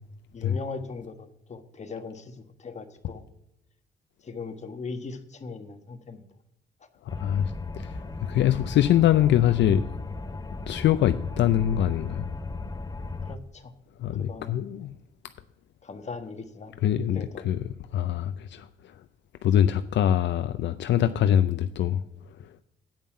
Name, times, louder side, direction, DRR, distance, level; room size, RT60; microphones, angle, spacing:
voice 1, 0.3-3.2 4.2-6.2 13.2-13.7 14.2-14.8 15.8-16.7 17.1-17.4, left 4 dB, 35° left, 1.2 m, -39 dB
voice 2, 7.0-9.9 10.7-12.3 14.0-14.9 16.8-17.6 17.9-18.9 19.4-22.0 22.4-22.5, left 11 dB, 65° left, 0.5 m, -24 dB
sound 1, 7.1-13.4, left 3 dB, 20° left, 0.7 m, -36 dB
8.8 x 5.4 x 7.5 m
cardioid pair, 90°, 20 cm